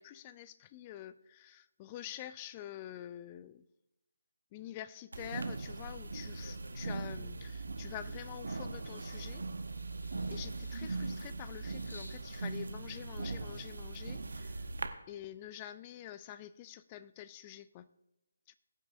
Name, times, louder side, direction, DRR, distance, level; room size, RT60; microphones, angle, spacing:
voice 1, 0.0-3.7 4.5-9.4 10.3-14.7 15.1-17.9 18.5-18.6, left 12 dB, 25° left, 15 dB, 0.4 m, -47 dB
sound 1, 5.1-14.9, right 3 dB, 70° right, 0.9 m, -40 dB
sound 2, 6.4-7.6 8.1-9.2 9.6-12.3 13.2-13.3, left 1 dB, 85° left, 1.9 m, -54 dB
20.5 x 8.6 x 2.5 m, 0.92 s
figure-of-eight pair, 150°, 0 cm